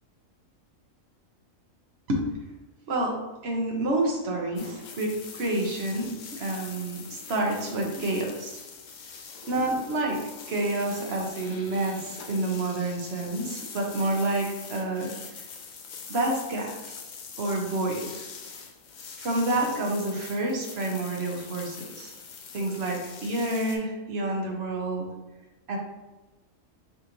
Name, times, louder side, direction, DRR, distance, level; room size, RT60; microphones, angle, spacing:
voice 1, 2.9-8.6 9.4-10.2 10.5-15.1 16.1-17.0 17.4-18.2 19.2-22.1 22.5-25.1 25.7-25.8, right 2 dB, 55° right, 1 dB, 0.9 m, -29 dB
sound 1, 4.6-23.8, left 5 dB, 90° left, 0.4 m, -43 dB
5.0 x 2.5 x 2.9 m, 1.1 s
omnidirectional pair, 1.4 m